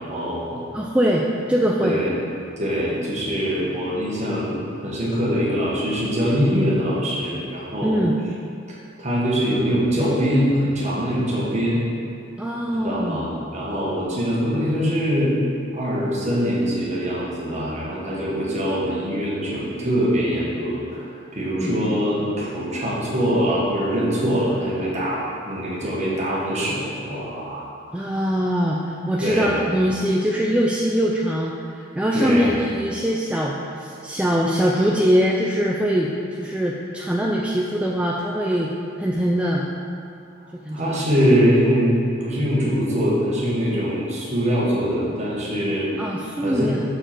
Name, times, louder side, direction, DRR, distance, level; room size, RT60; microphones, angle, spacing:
voice 1, 0.0-0.6 1.8-2.1 2.6-8.0 9.0-11.8 12.8-15.3 15.7-27.6 27.9-28.0 29.2-29.6 32.1-32.6 40.7-41.9 42.2-45.9 46.4-46.7, equal, 35° right, -6 dB, 1.5 m, -23 dB
voice 2, 0.7-2.0 7.8-8.1 12.4-13.2 21.6-21.7 27.9-38.7 39.0-39.7 40.6-41.1 46.0-46.8, equal, 5° right, -3 dB, 0.3 m, -22 dB
6.6 x 4.7 x 4.4 m, 2.5 s
head